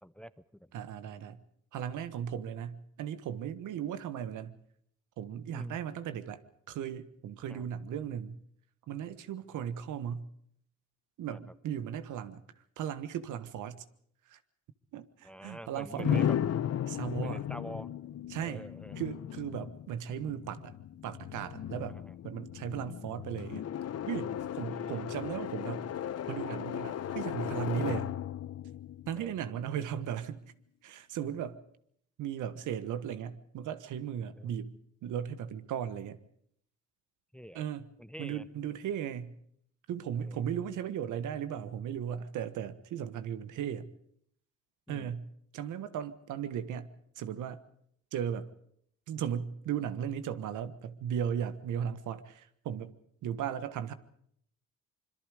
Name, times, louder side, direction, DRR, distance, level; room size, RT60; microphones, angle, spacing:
voice 1, 0.0-0.7 5.5-5.8 7.5-7.7 11.3-11.4 15.2-16.4 17.2-17.9 18.4-19.0 21.9-22.2 24.7-25.1 29.2-29.4 29.8-29.9 34.4-34.6 37.3-37.6 38.0-38.5 40.1-40.6 44.9-45.1, equal, 5° left, 16 dB, 0.8 m, -47 dB
voice 2, 0.7-1.4 1.7-4.6 5.2-6.4 6.7-8.4 8.9-10.3 11.2-12.4 12.8-13.8 14.3-14.4 14.9-16.3 16.9-17.4 18.3-18.6 19.0-20.7 21.0-22.0 22.2-23.7 24.1-25.9 26.3-28.1 29.1-30.4 30.8-31.6 32.2-34.7 35.0-36.2 37.5-37.9 38.2-39.4 39.9-43.9 44.9-46.9 47.2-47.6 48.1-48.5 49.1-52.9 53.2-53.9, right 9 dB, 80° right, 13 dB, 1.4 m, -36 dB
sound 1, 16.0-29.8, left 10 dB, 55° left, 0.9 m, -36 dB
25.5 x 22.5 x 4.9 m, 0.66 s
cardioid pair, 90°, 30 cm